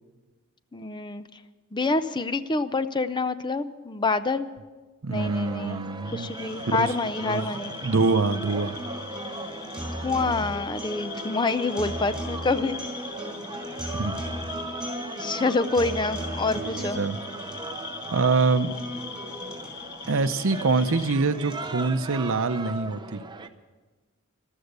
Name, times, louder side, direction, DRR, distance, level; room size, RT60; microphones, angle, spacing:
voice 1, 0.7-1.2 1.7-4.5 5.1-5.8 6.1-7.7 9.6-12.8 15.2-17.0, left 3 dB, 20° left, 13 dB, 0.5 m, -27 dB
voice 2, 5.0-6.3 6.7-6.9 7.2-8.8 13.9-14.2 16.6-17.2 18.1-18.7 20.1-23.2, right 4 dB, 65° right, 12 dB, 0.7 m, -25 dB
sound 1, 5.1-23.5, right 3 dB, 20° right, 0.7 m, -39 dB
sound 2, 6.0-21.2, left 6 dB, 50° left, 0.9 m, -41 dB
sound 3, 6.3-22.3, equal, 5° right, 4.5 m, -39 dB
14.5 x 12.5 x 6.8 m, 1.3 s
head